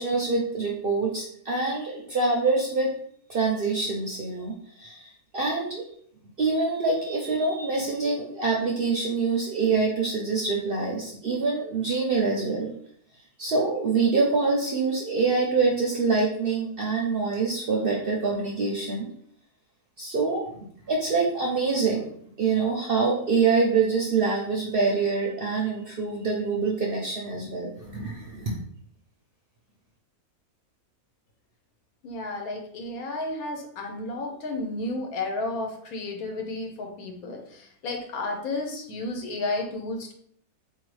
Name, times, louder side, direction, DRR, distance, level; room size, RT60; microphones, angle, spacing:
voice 1, 0.0-2.9 3.3-5.8 6.4-12.7 13.4-19.1 20.0-20.6 20.9-22.1 22.4-28.6, right 4 dB, 60° right, -1 dB, 0.6 m, -25 dB
voice 2, 32.0-40.1, left 2 dB, 75° left, 2 dB, 1.2 m, -32 dB
4.1 x 2.7 x 3.1 m, 0.65 s
omnidirectional pair, 1.6 m